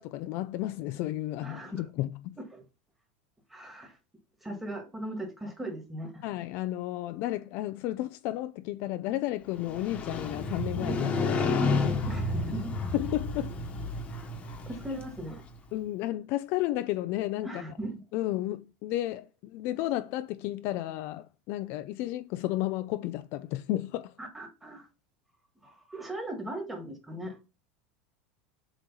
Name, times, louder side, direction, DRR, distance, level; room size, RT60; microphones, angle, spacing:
voice 1, 0.0-2.4 6.2-12.2 12.9-13.6 15.7-17.6 18.1-24.1, left 15 dB, 50° left, 0.4 m, -33 dB
voice 2, 1.4-1.8 2.4-2.6 3.5-3.9 4.4-6.1 12.1-12.9 14.7-15.4 17.4-18.0 24.2-24.9 25.6-27.3, right 1 dB, 5° right, 1.7 m, -38 dB
Motorcycle, 9.6-15.5, left 3 dB, 25° left, 1.1 m, -31 dB
7.7 x 3.1 x 5.5 m
supercardioid pair, 155°, 5 cm